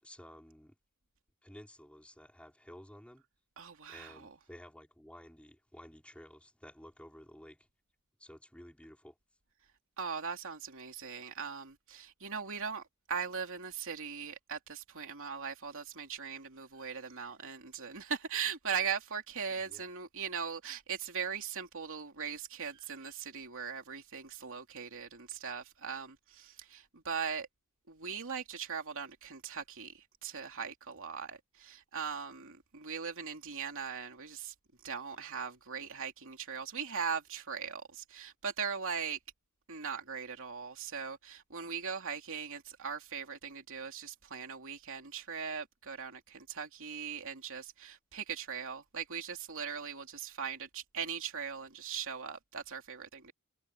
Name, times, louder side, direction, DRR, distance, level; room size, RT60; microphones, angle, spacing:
voice 1, 0.0-0.8 1.4-3.2 3.9-7.7 8.2-9.2 19.5-19.9, equal, 5° left, 5.1 m, -53 dB
voice 2, 3.6-4.1 10.0-12.8 13.1-27.5 27.9-34.5 34.8-39.2 39.7-53.3, right 6 dB, 65° right, 2.9 m, -39 dB
head